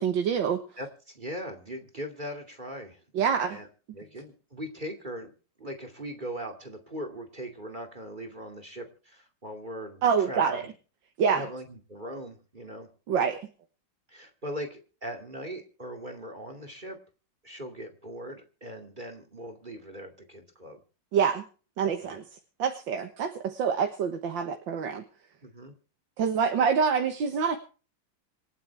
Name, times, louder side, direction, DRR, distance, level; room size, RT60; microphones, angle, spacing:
voice 1, 0.0-0.6 3.1-3.6 10.0-10.6 11.2-11.4 13.1-13.4 21.1-21.4 21.8-22.2 22.6-25.0 26.2-27.6, right 6 dB, 90° right, 6 dB, 2.0 m, -26 dB
voice 2, 0.8-3.0 3.5-3.7 3.9-5.3 5.6-10.7 11.3-12.9 14.1-17.0 17.4-20.8 22.0-22.2 25.4-25.7, equal, 25° right, 6 dB, 2.6 m, -40 dB
27.0 x 9.4 x 3.5 m, 0.38 s
omnidirectional pair, 2.0 m